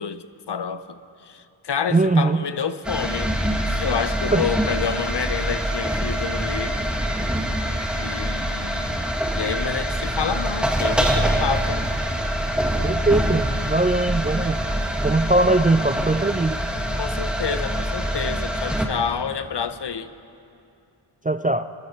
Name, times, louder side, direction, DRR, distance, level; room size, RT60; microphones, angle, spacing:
voice 1, 0.0-3.3 3.6-6.8 8.0-9.0 9.3-11.8 17.0-20.1, left 7 dB, 55° left, 13 dB, 0.7 m, -29 dB
voice 2, 1.9-2.4 4.3-4.5 12.8-14.6 15.0-16.6 21.2-21.7, right 2 dB, 20° right, 11 dB, 0.3 m, -20 dB
sound 1, 2.8-18.9, equal, ahead, 1.7 m, -25 dB
24.5 x 12.5 x 4.4 m, 2.6 s
cardioid pair, 40°, 48 cm